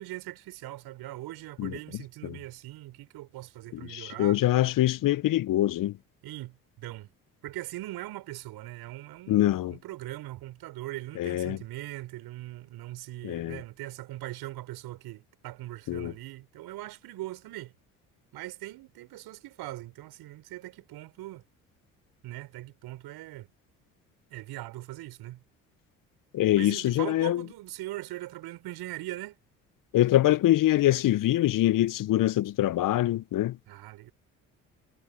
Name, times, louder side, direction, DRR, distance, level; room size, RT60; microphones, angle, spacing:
voice 1, 0.0-4.4 6.2-7.1 7.4-17.7 18.3-21.4 22.2-23.5 24.3-25.4 26.6-29.4 33.7-34.1, right 16 dB, 65° right, 4.7 m, -41 dB
voice 2, 3.7-5.9 9.3-9.8 11.2-11.6 13.2-13.6 15.9-16.1 26.3-27.4 29.9-33.6, left 14 dB, 50° left, 1.0 m, -24 dB
hypercardioid pair, 50°, 41 cm